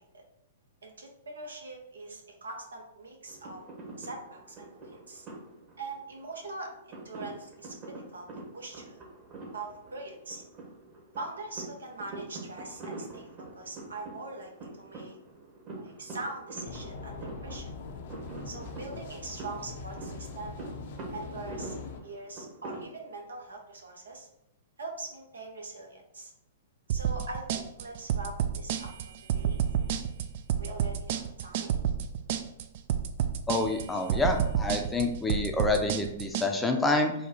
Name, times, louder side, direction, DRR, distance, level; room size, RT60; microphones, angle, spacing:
voice 1, 0.8-3.6 4.0-5.3 5.8-7.7 8.1-8.3 8.5-9.0 9.5-10.4 11.2-13.3 13.5-15.2 15.8-17.7 18.4-20.6 21.1-21.7 22.0-24.3 24.8-26.3 26.9-28.9 29.3-30.1 30.6-31.8 33.9-34.2, right 3 dB, 90° right, 1 dB, 1.0 m, -42 dB
sound 1, 3.3-22.8, right 2 dB, 35° right, 1.1 m, -45 dB
sound 2, 16.6-22.0, left 4 dB, 60° left, 0.6 m, -42 dB
sound 3, 26.9-36.5, right 9 dB, 55° right, 0.4 m, -29 dB
voice 2, 33.5-37.1, left 2 dB, 10° left, 3 dB, 0.5 m, -27 dB
4.3 x 2.3 x 4.2 m, 0.81 s
hypercardioid pair, 125°, 0 cm